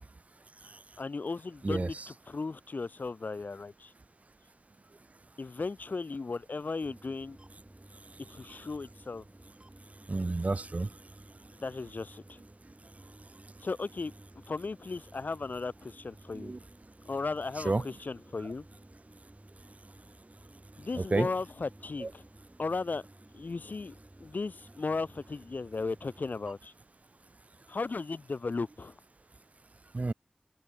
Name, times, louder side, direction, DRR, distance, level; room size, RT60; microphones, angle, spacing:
voice 1, 1.0-3.9 5.4-7.4 8.3-9.2 11.5-12.4 13.6-14.1 14.5-16.5 17.1-18.6 20.8-22.2 22.6-23.0 23.3-23.9 24.2-26.7 27.7-29.0, left 3 dB, 90° left, 1.1 m, -36 dB
sound 1, 6.8-26.5, right 1 dB, 30° right, 3.0 m, -55 dB
voice 2, 10.1-10.9 16.3-16.6 17.6-17.8 21.1-21.3 22.0-22.1 29.9-30.1, right 3 dB, 55° right, 0.5 m, -29 dB
open air
wide cardioid pair, 40°, 3 cm